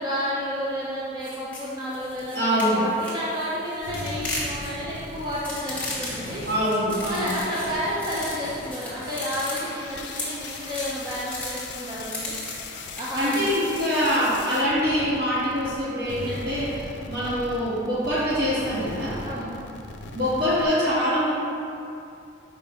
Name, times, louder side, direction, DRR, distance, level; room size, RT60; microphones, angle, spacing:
voice 1, 0.0-6.4 7.1-12.4 12.9-13.5 19.2-19.6, equal, 20° right, -8 dB, 0.7 m, -31 dB
sound 1, 1.2-13.4, left 2 dB, 5° left, 1.3 m, -36 dB
voice 2, 2.3-2.9 6.4-7.4 13.1-19.2 20.1-21.3, equal, 50° right, -9 dB, 1.5 m, -24 dB
sound 2, 3.8-15.8 16.0-20.6, left 3 dB, 60° left, 0.5 m, -39 dB
5.7 x 5.2 x 4.4 m, 2.6 s
head